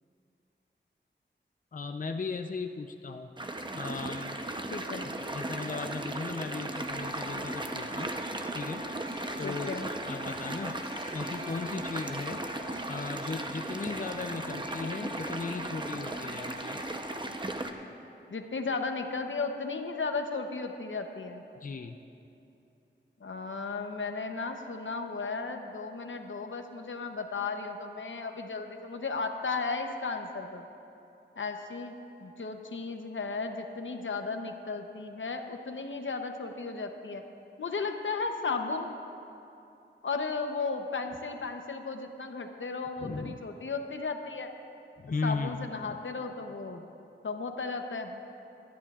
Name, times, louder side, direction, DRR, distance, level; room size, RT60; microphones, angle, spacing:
voice 1, 1.7-3.3 3.7-4.5 5.3-8.1 8.5-8.9 9.4-9.7 10.1-10.9 11.1-12.5 12.9-16.8 21.6-22.0 43.0-43.4 45.0-45.7, left 4 dB, 45° left, 5 dB, 0.5 m, -37 dB
sound 1, 3.4-17.7, right 1 dB, 25° right, 0.7 m, -36 dB
voice 2, 4.7-5.1 9.4-9.9 18.3-21.4 23.2-30.6 31.4-37.2 37.6-38.9 40.0-44.5 45.2-46.9 47.2-48.2, left 4 dB, 80° left, 5 dB, 0.8 m, -35 dB
Wind chime, 6.8-17.6, left 1 dB, 85° right, 2.3 m, -47 dB
24.5 x 11.5 x 2.4 m, 2.7 s
wide cardioid pair, 75°, 20 cm